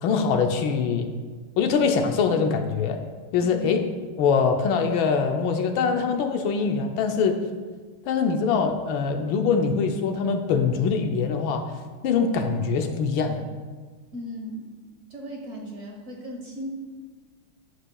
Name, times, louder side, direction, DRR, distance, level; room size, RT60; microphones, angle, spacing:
voice 1, 0.0-1.1 1.6-3.0 3.3-3.8 4.2-7.4 8.0-11.8 12.0-13.4, left 5 dB, 75° left, 5 dB, 1.4 m, -23 dB
voice 2, 14.1-14.7 15.1-16.7, equal, 45° right, -1 dB, 1.1 m, -36 dB
11.0 x 8.3 x 2.3 m, 1.5 s
omnidirectional pair, 2.3 m